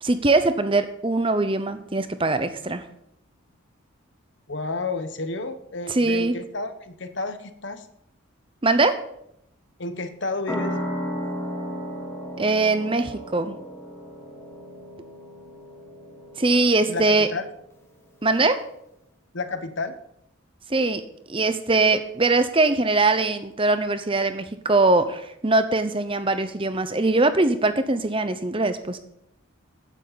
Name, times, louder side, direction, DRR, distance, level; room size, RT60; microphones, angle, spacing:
voice 1, 0.0-2.8 5.9-6.4 8.6-9.0 12.4-13.6 16.4-17.3 18.2-18.6 20.7-29.0, right 2 dB, 25° right, 10 dB, 0.8 m, -22 dB
voice 2, 4.5-7.9 9.8-10.7 16.9-17.5 19.3-20.0, left 3 dB, 55° left, 11 dB, 1.0 m, -31 dB
sound 1, 10.5-17.7, equal, 10° left, 1.5 m, -35 dB
14.5 x 9.8 x 4.1 m, 0.75 s
head